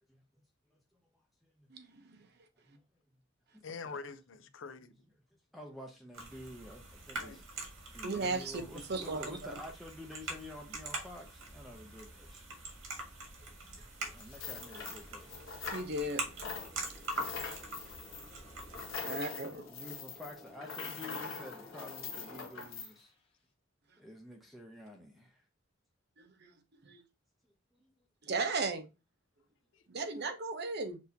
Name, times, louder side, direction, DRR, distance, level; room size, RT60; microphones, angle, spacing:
voice 1, 1.7-2.3 8.0-8.6 8.9-9.4 13.8-14.2 15.7-16.6 19.0-19.7 26.2-26.5 26.8-27.0 28.2-28.9 29.9-31.0, right 3 dB, 55° right, 0.8 m, -36 dB
voice 2, 3.6-4.9 7.2-7.4 17.9-18.1 29.7-30.1, left 4 dB, 65° left, 0.5 m, -46 dB
voice 3, 5.5-7.4 7.9-12.5 13.8-15.4 19.0-19.2 19.6-23.1 24.0-25.4 27.7-28.1, left 1 dB, ahead, 0.6 m, -50 dB
sound 1, 6.1-19.0, right 2 dB, 75° right, 1.9 m, -44 dB
sound 2, 14.2-16.1 16.4-22.9, left 5 dB, 85° left, 1.4 m, -43 dB
sound 3, 16.0-23.3, left 1 dB, 25° left, 1.3 m, -57 dB
6.1 x 2.7 x 2.7 m
head